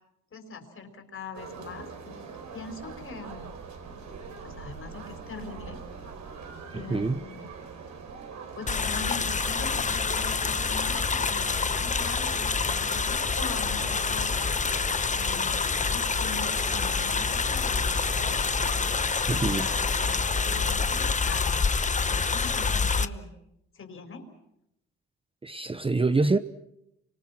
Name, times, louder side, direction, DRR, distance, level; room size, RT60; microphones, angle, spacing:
voice 1, 0.3-3.5 4.4-5.8 6.7-7.5 8.6-14.3 15.1-18.4 19.3-23.3 23.7-24.2, left 4 dB, 45° left, 5.1 m, -42 dB
sound 1, 1.3-21.2, right 5 dB, 65° right, 4.5 m, -43 dB
voice 2, 6.7-7.2 19.3-19.7 25.4-26.4, right 3 dB, 20° right, 0.9 m, -25 dB
sound 2, 8.7-23.1, left 5 dB, 25° left, 0.9 m, -27 dB
29.5 x 25.5 x 6.0 m
cardioid pair, 90°, 30 cm